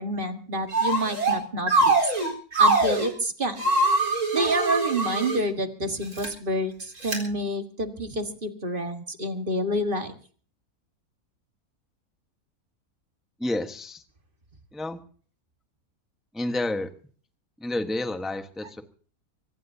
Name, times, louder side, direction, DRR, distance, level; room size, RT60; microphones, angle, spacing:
voice 1, 0.0-2.1 2.6-3.7 4.3-10.1, right 1 dB, 35° right, 6 dB, 1.8 m, -28 dB
sound 1, 0.7-1.4 1.7-3.1 3.6-5.4 6.0-6.3 7.0-7.2, right 2 dB, 75° right, 4.6 m, -23 dB
voice 2, 13.4-14.0 14.7-15.0 16.3-16.9 17.6-18.8, left 2 dB, ahead, 7 dB, 1.1 m, -29 dB
24.0 x 19.0 x 2.8 m, 0.44 s
omnidirectional pair, 1.6 m